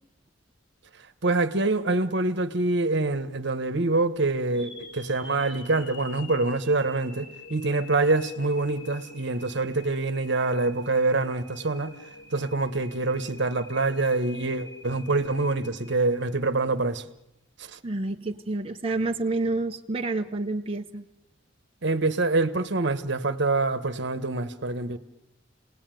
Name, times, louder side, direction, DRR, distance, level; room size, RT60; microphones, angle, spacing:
voice 1, 1.2-11.9 12.3-17.0 17.6-17.8 21.8-25.0, right 3 dB, 65° right, 1.3 m, -25 dB
sound 1, 4.5-16.6, left 2 dB, 75° left, 5.6 m, -47 dB
voice 2, 17.8-21.0, right 2 dB, 30° right, 0.9 m, -29 dB
28.5 x 19.0 x 9.2 m
head